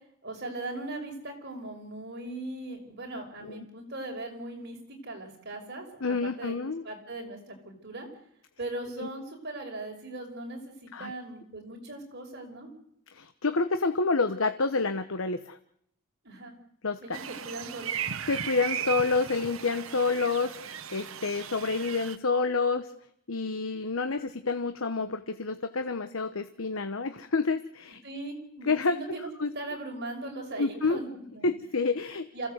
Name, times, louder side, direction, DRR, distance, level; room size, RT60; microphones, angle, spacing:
voice 1, 0.2-6.5 6.8-8.1 8.6-12.7 16.2-16.6 17.0-18.0 28.0-29.3 29.5-31.5 32.3-32.5, right 2 dB, 55° right, 3 dB, 5.4 m, -39 dB
voice 2, 6.0-6.8 9.0-9.1 10.9-11.1 13.1-15.6 16.8-17.2 18.3-22.9 23.3-28.0 28.7-29.0 29.4-29.5 30.6-31.0 31.4-32.3, left 3 dB, 75° left, 9 dB, 1.1 m, -28 dB
sound 1, 17.1-22.2, right 8 dB, 75° right, 1.2 m, -36 dB
27.0 x 16.0 x 8.1 m, 0.71 s
head